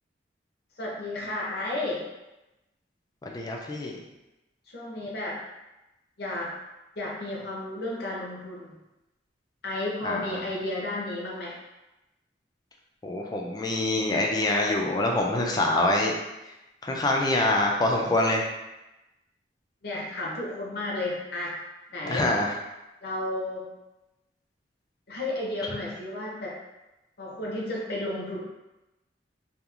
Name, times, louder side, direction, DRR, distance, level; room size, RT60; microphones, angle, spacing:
voice 1, 0.8-2.0 4.7-5.4 6.2-6.5 7.0-8.8 9.6-11.6 19.8-21.5 21.9-22.3 23.0-23.7 25.1-26.5 27.2-28.4, left 1 dB, 60° left, -3 dB, 0.7 m, -32 dB
voice 2, 3.2-4.0 10.0-10.4 13.0-16.1 16.8-18.5 22.0-22.5, left 1 dB, 20° left, 0 dB, 0.3 m, -25 dB
2.8 x 2.4 x 2.4 m, 0.98 s
head